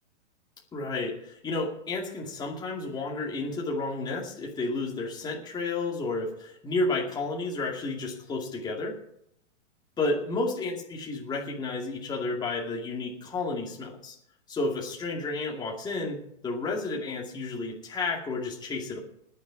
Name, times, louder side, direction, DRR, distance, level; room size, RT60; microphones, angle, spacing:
voice 1, 0.7-8.9 10.0-14.2 14.5-19.0, left 3 dB, 10° left, -2 dB, 2.4 m, -31 dB
19.5 x 7.0 x 6.0 m, 0.73 s
hypercardioid pair, 155°, 37 cm